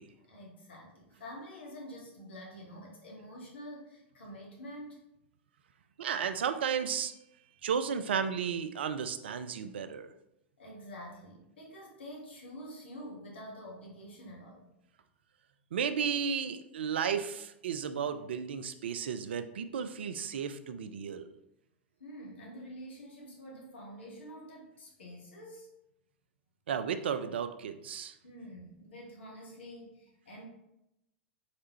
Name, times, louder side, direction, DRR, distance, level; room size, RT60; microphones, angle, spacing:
voice 1, 0.1-5.0 10.6-14.7 22.0-25.7 28.2-30.5, equal, 65° left, -2 dB, 1.2 m, -47 dB
voice 2, 6.0-7.1 7.6-10.1 15.7-21.3 26.7-28.2, right 7 dB, 65° right, 10 dB, 0.3 m, -33 dB
4.0 x 3.3 x 3.0 m, 0.85 s
figure-of-eight pair, 90°, 6 cm